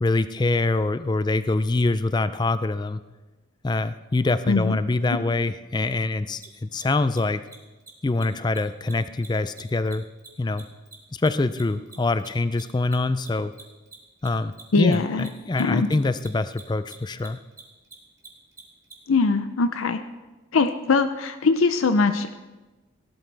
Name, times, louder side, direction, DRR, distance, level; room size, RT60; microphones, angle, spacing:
voice 1, 0.0-3.0 3.6-7.4 8.0-10.0 10.4-10.6 11.1-13.5 14.2-17.4, left 2 dB, 20° left, 13 dB, 0.3 m, -24 dB
voice 2, 4.5-4.8 5.1-5.2 14.7-15.3 15.6-15.9 19.1-20.0 20.5-22.3, left 4 dB, 85° left, 9 dB, 0.6 m, -21 dB
Mechanisms, 6.4-6.5 6.7-6.8 7.1-7.2 7.4-7.5 7.8-8.2 8.5-8.6 8.9-11.6 11.9-18.9, right 4 dB, 15° right, 1.8 m, -45 dB
17.5 x 12.0 x 3.4 m, 1.2 s
head